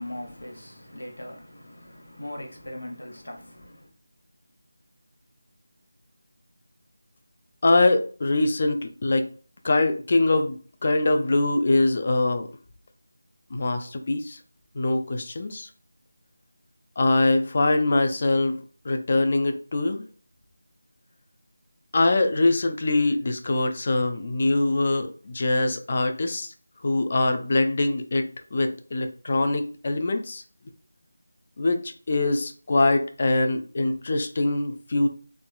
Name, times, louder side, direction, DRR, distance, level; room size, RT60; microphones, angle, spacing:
voice 1, 0.0-3.9, left 1 dB, 90° left, 1.1 m, -40 dB
voice 2, 7.6-9.3 9.6-12.5 13.5-14.4 14.7-15.7 17.0-20.1 21.9-26.5 26.8-30.4 31.6-35.1, left 2 dB, 40° left, 0.4 m, -23 dB
3.6 x 2.2 x 2.3 m
figure-of-eight pair, 170°, 0 cm